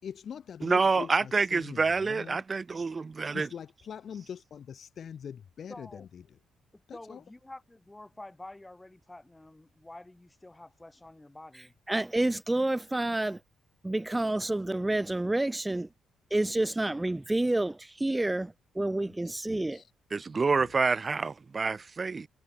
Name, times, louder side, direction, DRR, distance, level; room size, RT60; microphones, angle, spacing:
voice 1, 0.0-2.4 3.3-6.4 6.9-7.2 19.2-19.9 20.6-20.7, left 8 dB, 55° left, 5.8 m, -43 dB
voice 2, 0.6-3.5 20.1-22.3, right 4 dB, 30° right, 2.0 m, -27 dB
voice 3, 5.7-6.1 6.7-11.7, left 2 dB, 15° left, 5.5 m, -48 dB
voice 4, 11.9-13.4 13.8-15.9 16.3-19.8, right 2 dB, 10° right, 2.1 m, -29 dB
cardioid pair, 90°, 0 cm